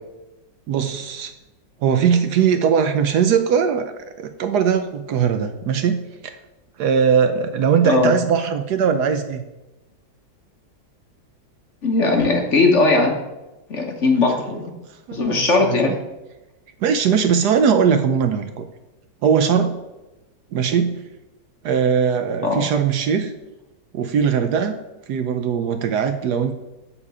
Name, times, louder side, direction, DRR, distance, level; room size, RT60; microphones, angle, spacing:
voice 1, 0.7-1.3 1.8-3.9 4.2-6.3 6.8-9.4 15.1-16.0 16.8-18.7 19.2-19.8 20.5-21.0 21.6-23.3 23.9-24.8 25.1-26.5, right 7 dB, 70° right, 8 dB, 1.1 m, -20 dB
voice 2, 11.8-13.1 13.7-14.6 15.1-15.9 22.4-22.6, left 3 dB, 45° left, 2 dB, 1.3 m, -18 dB
7.3 x 7.0 x 4.8 m, 1.0 s
omnidirectional pair, 2.0 m